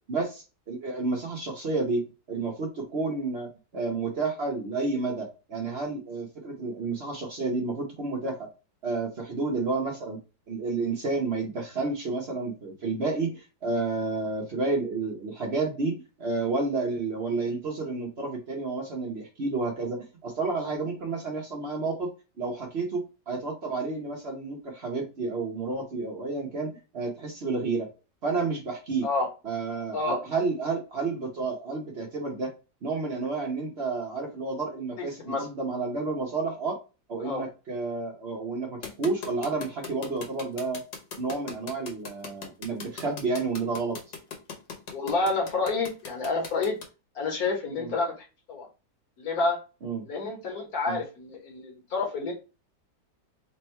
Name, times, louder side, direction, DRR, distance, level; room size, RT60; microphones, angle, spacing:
voice 1, 0.1-8.5 8.8-10.2 10.5-27.9 28.2-29.1 29.4-32.5 32.8-36.8 37.1-40.8 41.2-44.0 47.7-47.9 49.8-50.0 50.9-51.0, right 3 dB, 50° right, 1 dB, 0.8 m, -30 dB
sound 1, 38.8-46.9, left 6 dB, 90° left, 1.6 m, -39 dB
voice 2, 44.9-46.7 47.1-48.1 48.5-48.7 49.2-49.6 50.1-52.3, left 3 dB, 60° left, 1 dB, 1.5 m, -28 dB
3.5 x 2.2 x 4.3 m, 0.30 s
omnidirectional pair, 1.9 m